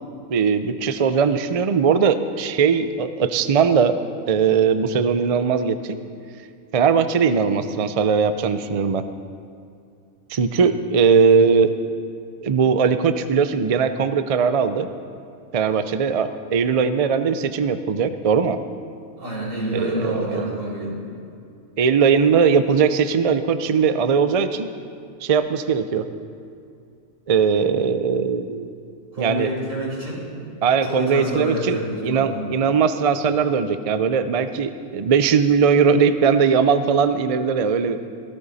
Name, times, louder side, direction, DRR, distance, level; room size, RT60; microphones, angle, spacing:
voice 1, 0.3-4.0 4.3-6.0 6.7-9.0 10.3-11.7 12.4-14.9 15.5-18.6 19.7-20.5 21.8-24.7 25.2-26.0 27.3-28.7 29.2-29.5 30.6-31.8 32.0-38.0, right 6 dB, 55° right, 10 dB, 0.4 m, -19 dB
voice 2, 19.2-20.9 29.1-30.3 30.8-32.4, right 1 dB, 70° right, -6 dB, 5.5 m, -27 dB
17.0 x 16.0 x 4.1 m, 2.5 s
omnidirectional pair, 1.4 m